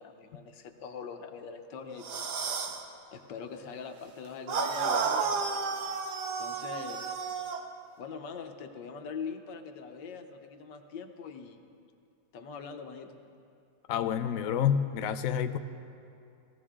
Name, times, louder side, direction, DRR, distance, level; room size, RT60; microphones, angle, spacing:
voice 1, 0.0-2.4 3.1-6.0 6.4-7.1 8.0-11.6 12.3-13.1, left 5 dB, 65° left, 6 dB, 1.5 m, -43 dB
sound 1, 2.0-2.8 4.5-7.6, right 5 dB, 60° right, 1.4 m, -32 dB
voice 2, 13.9-15.6, left 9 dB, 85° left, 9 dB, 0.7 m, -28 dB
19.5 x 15.0 x 3.7 m, 2.5 s
omnidirectional pair, 2.1 m